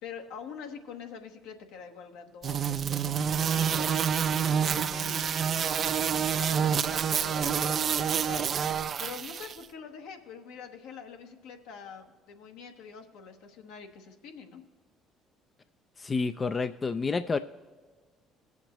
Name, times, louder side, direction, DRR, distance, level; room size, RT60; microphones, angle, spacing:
voice 1, 0.0-5.4 6.0-7.9 8.2-8.6 9.0-14.6, left 6 dB, 75° left, 4 dB, 1.1 m, -45 dB
sound 1, 2.4-9.6, right 7 dB, 50° right, 0.4 m, -28 dB
voice 2, 16.0-17.4, left 4 dB, 30° left, 10 dB, 0.4 m, -29 dB
19.0 x 7.1 x 3.0 m, 1.4 s
hypercardioid pair, 55°, 0 cm